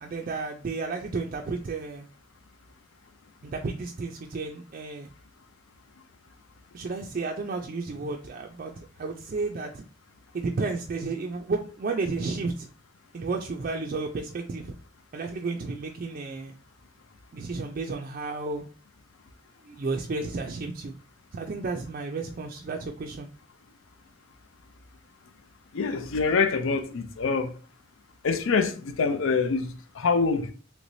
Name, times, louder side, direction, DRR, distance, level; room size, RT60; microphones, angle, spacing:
voice 1, 0.0-2.1 3.4-5.1 6.7-9.8 10.3-12.7 13.1-14.7 15.1-16.5 17.3-18.6 19.6-21.0 21.3-23.3, right 3 dB, 45° right, 0.3 m, -32 dB
voice 2, 25.7-27.5 28.2-30.5, left 4 dB, 85° left, 0.5 m, -25 dB
3.2 x 3.1 x 2.6 m
head